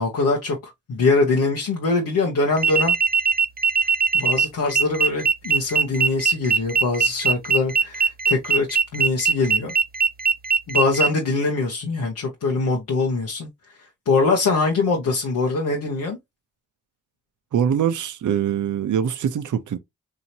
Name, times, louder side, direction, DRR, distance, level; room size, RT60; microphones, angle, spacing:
voice 1, 0.0-2.9 4.1-8.7 8.9-9.7 10.7-13.5 14.1-16.2, left 3 dB, 85° left, 1.0 m, -23 dB
sound 1, 2.6-11.1, right 6 dB, 30° right, 0.7 m, -20 dB
voice 2, 17.5-19.8, right 8 dB, 65° right, 0.6 m, -23 dB
4.8 x 2.7 x 2.8 m
cardioid pair, 45°, 32 cm